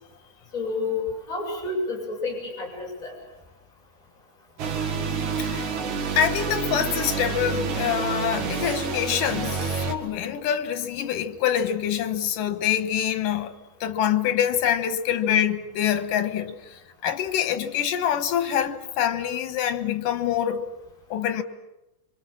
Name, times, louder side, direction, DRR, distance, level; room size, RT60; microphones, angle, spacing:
voice 1, 0.5-3.1, left 3 dB, 25° left, 7.3 m, -30 dB
sound 1, 4.6-9.9, right 5 dB, 65° right, 3.3 m, -28 dB
voice 2, 5.4-5.7 6.1-13.6 13.8-20.7 21.1-21.4, left 9 dB, 90° left, 3.0 m, -25 dB
27.5 x 24.5 x 7.6 m
omnidirectional pair, 3.7 m